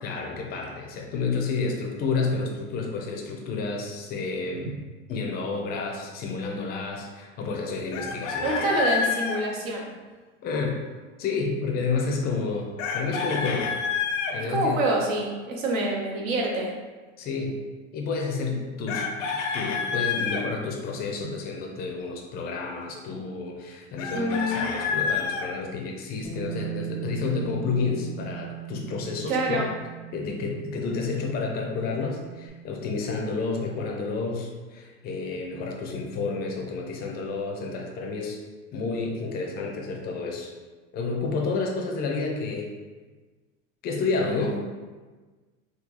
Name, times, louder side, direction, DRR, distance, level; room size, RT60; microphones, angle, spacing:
voice 1, 0.0-4.7 5.1-8.8 10.4-10.8 11.2-13.7 14.3-14.8 17.2-17.6 17.9-19.1 19.5-29.6 30.1-38.4 38.7-40.5 40.9-42.7 43.8-44.6, left 4 dB, 25° left, 1 dB, 0.4 m, -30 dB
Chicken rooster, 7.9-9.4 12.8-14.3 18.9-20.4 24.0-25.5, left 6 dB, 75° left, 0.6 m, -28 dB
voice 2, 8.4-9.9 14.5-16.7 24.1-24.7 29.3-29.7, right 1 dB, 85° right, 0 dB, 0.9 m, -26 dB
Bass guitar, 26.2-32.5, right 14 dB, 30° right, 0.8 m, -38 dB
3.7 x 2.2 x 2.9 m, 1.3 s
supercardioid pair, 135°, 39 cm